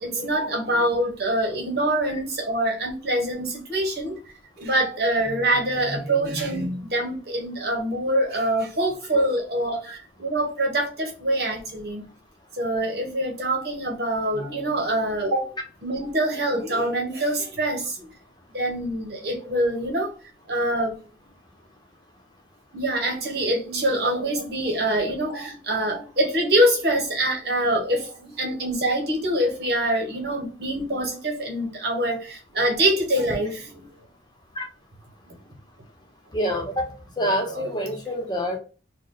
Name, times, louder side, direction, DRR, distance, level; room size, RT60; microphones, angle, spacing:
voice 1, 0.0-4.1 4.6-12.1 12.6-15.5 15.8-18.1 18.5-20.1 20.5-21.0 22.7-33.9 35.3-35.4 37.5-37.6, right 1 dB, 60° right, 1 dB, 1.2 m, -25 dB
voice 2, 36.3-36.9 37.2-38.6, equal, 25° left, 2 dB, 0.9 m, -26 dB
4.3 x 2.3 x 3.9 m, 0.35 s
head